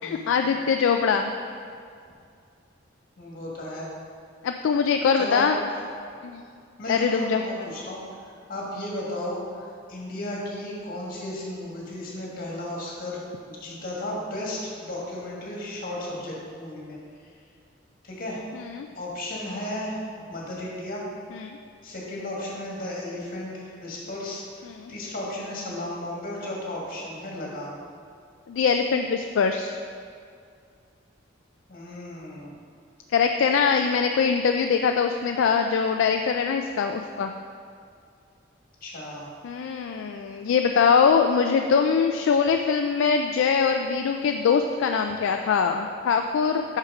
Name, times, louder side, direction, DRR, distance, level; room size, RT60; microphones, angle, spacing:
voice 1, 0.0-1.3 4.4-5.6 6.2-6.4 6.9-7.4 18.5-18.9 21.3-21.6 24.7-24.9 28.5-29.8 33.1-37.3 39.4-46.8, left 6 dB, 70° left, 5 dB, 0.3 m, -23 dB
voice 2, 3.2-3.9 5.1-5.5 6.8-13.2 13.5-17.0 18.0-18.4 18.9-21.1 21.8-27.8 31.7-32.5 38.8-39.3, left 1 dB, 50° left, -4 dB, 1.7 m, -34 dB
5.9 x 5.7 x 4.9 m, 2.3 s
head